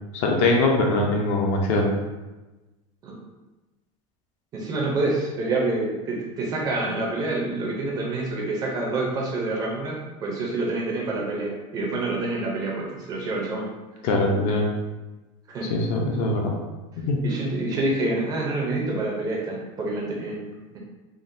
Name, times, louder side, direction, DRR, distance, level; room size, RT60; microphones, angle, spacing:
voice 1, 0.1-1.9 14.0-14.6 15.7-16.6 17.1-17.2, left 2 dB, 40° left, 0 dB, 0.4 m, -22 dB
voice 2, 4.5-13.7 15.5-15.7 17.2-20.8, right 2 dB, 20° right, -2 dB, 0.4 m, -27 dB
3.7 x 2.1 x 2.5 m, 1.1 s
supercardioid pair, 175°, 17 cm